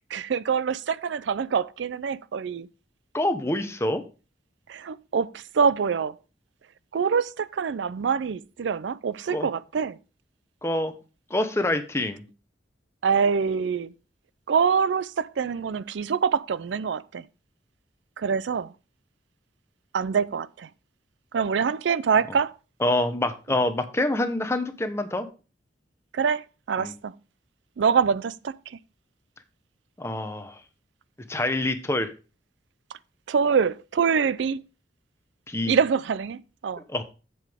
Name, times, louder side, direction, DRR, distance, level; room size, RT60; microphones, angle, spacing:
voice 1, 0.0-2.7 4.7-6.2 6.9-10.0 13.0-13.9 14.5-17.2 18.2-18.7 19.9-20.7 21.3-22.5 26.1-27.1 27.8-28.8 33.3-34.6 35.7-36.8, right 6 dB, 75° right, 0.4 m, -25 dB
voice 2, 3.1-4.0 9.3-9.5 10.6-10.9 11.3-12.2 22.8-25.3 26.8-26.9 30.0-30.6 31.3-32.1 35.5-35.7 36.9-37.0, left 1 dB, 15° left, 0.9 m, -26 dB
8.2 x 7.8 x 3.5 m
head